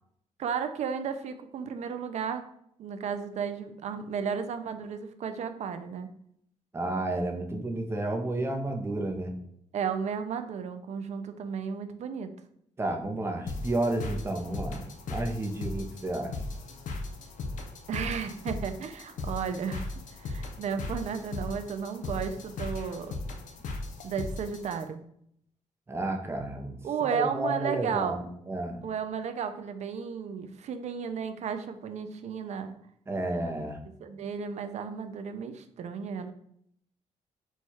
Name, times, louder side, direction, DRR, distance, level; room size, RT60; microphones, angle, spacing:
voice 1, 0.4-2.4 2.8-6.1 9.7-12.3 17.9-23.2 24.0-25.0 26.8-28.2 28.8-32.7 34.0-36.3, right 7 dB, 60° right, 9 dB, 0.5 m, -33 dB
voice 2, 6.7-9.3 12.8-16.4 25.9-26.7 27.0-28.8 33.1-33.8, right 2 dB, 20° right, 3 dB, 0.6 m, -31 dB
sound 1, 13.5-24.8, left 2 dB, 80° left, 0.6 m, -37 dB
4.6 x 2.3 x 4.1 m, 0.70 s
cardioid pair, 130°, 13 cm